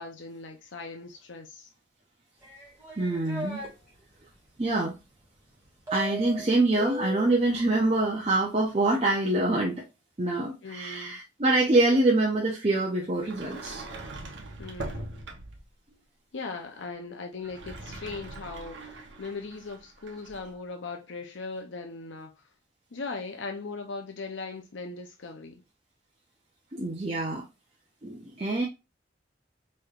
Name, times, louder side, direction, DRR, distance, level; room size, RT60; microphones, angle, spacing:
voice 1, 0.0-1.7 10.6-11.2 14.6-15.3 16.3-22.3 22.9-25.6, left 3 dB, 75° left, 0.7 m, -39 dB
sound 1, 2.4-3.7 5.9-7.5, right 1 dB, 15° right, 2.0 m, -38 dB
voice 2, 3.0-3.7 4.6-4.9 5.9-9.8 10.2-13.8 26.7-27.4 28.0-28.7, right 2 dB, 30° right, 0.7 m, -25 dB
Sliding door, 13.2-15.7 17.3-20.5, right 2 dB, 75° right, 0.8 m, -41 dB
4.6 x 3.2 x 2.4 m
head